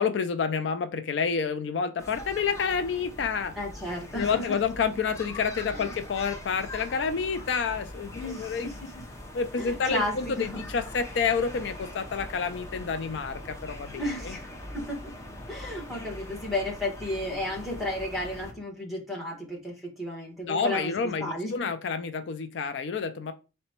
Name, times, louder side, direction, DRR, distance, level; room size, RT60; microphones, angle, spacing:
voice 1, 0.0-3.5 4.1-8.7 9.3-14.4 15.7-15.8 20.4-23.3, left 5 dB, 70° left, 10 dB, 0.4 m, -29 dB
sound 1, 2.0-18.5, left 1 dB, 15° left, 0.5 m, -42 dB
voice 2, 3.5-4.6 5.7-5.9 8.2-8.9 9.6-10.6 13.9-15.1 15.5-21.7, left 1 dB, ahead, -1 dB, 1.0 m, -33 dB
4.0 x 2.2 x 4.3 m, 0.31 s
head